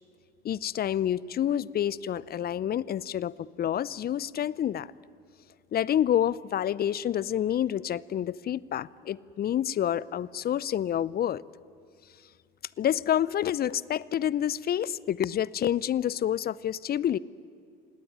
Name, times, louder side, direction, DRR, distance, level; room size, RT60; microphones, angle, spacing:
voice 1, 0.4-4.9 5.7-11.4 12.8-17.2, left 10 dB, 35° left, 22 dB, 0.6 m, -28 dB
26.5 x 18.0 x 10.0 m, 2.3 s
hypercardioid pair, 70°, 29 cm